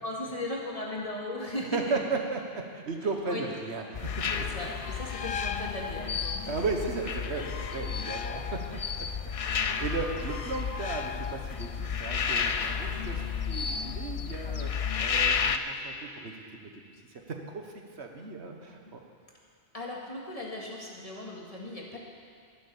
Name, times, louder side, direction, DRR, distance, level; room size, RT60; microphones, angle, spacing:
voice 1, 0.0-2.0 3.3-3.5 4.3-6.6 8.7-8.9 9.6-9.7 18.6-18.9 19.7-22.0, left 1 dB, 30° left, -3 dB, 2.2 m, -37 dB
voice 2, 1.7-2.4 2.7-3.8 4.6-4.7 6.4-8.5 8.7-9.1 9.6-14.7 15.0-16.3 17.5-17.6 18.0-19.0, right 4 dB, 75° right, 3 dB, 1.5 m, -35 dB
sound 1, 3.9-15.6, left 6 dB, 50° left, 0.4 m, -32 dB
13.0 x 10.5 x 7.1 m, 2.2 s
omnidirectional pair, 1.1 m